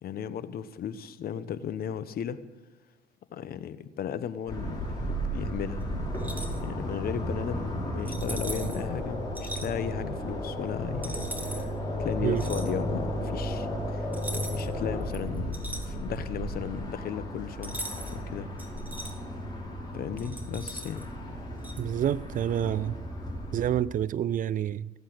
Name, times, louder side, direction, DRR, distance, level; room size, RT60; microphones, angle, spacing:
voice 1, 0.0-2.4 3.3-5.9 6.6-11.7 12.0-17.8 18.1-18.5 19.9-21.1, left 8 dB, 55° left, 1.0 m, -36 dB
sound 1, 4.5-23.8, equal, 20° left, 5.4 m, -34 dB
sound 2, 6.1-6.6 8.0-8.8 9.3-9.7 11.0-11.6 12.4-12.7 14.1-14.7 15.1-16.3 17.6-18.2 18.6-19.1 20.2-21.0 21.6-21.8, right 1 dB, 10° right, 2.3 m, -39 dB
voice 2, 21.8-23.0 23.5-24.9, right 10 dB, 45° right, 0.5 m, -28 dB
17.5 x 8.2 x 8.0 m
cardioid pair, 90°, 18 cm